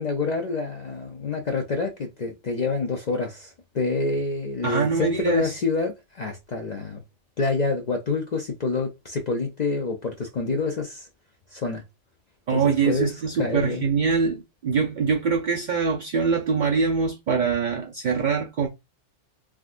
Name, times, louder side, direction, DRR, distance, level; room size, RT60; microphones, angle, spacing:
voice 1, 0.0-7.0 7.4-11.1 11.5-11.8 12.5-13.1 13.4-13.8, left 3 dB, 55° left, 0.5 m, -27 dB
voice 2, 4.6-5.5 12.5-18.7, right 5 dB, 55° right, 0.5 m, -24 dB
3.6 x 2.3 x 2.5 m
omnidirectional pair, 1.2 m